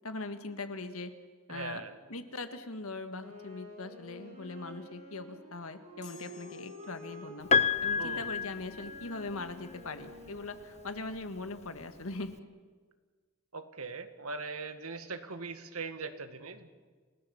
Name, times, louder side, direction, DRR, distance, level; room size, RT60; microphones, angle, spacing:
voice 1, 0.0-1.1 1.5-1.8 2.1-7.5 7.8-12.3, left 3 dB, 75° left, 8 dB, 1.8 m, -41 dB
voice 2, 1.5-1.9 7.9-8.3 13.5-16.7, right 4 dB, 85° right, 8 dB, 1.9 m, -40 dB
Wind instrument woodwind instrument, 3.1-11.4, equal, 35° right, 6.6 m, -50 dB
sound 1, 6.0-7.5, left 6 dB, 55° left, 8.0 m, -55 dB
Piano, 7.5-9.5 10.8-10.9, left 6 dB, 30° left, 0.7 m, -29 dB
29.0 x 17.5 x 7.2 m, 1.5 s
head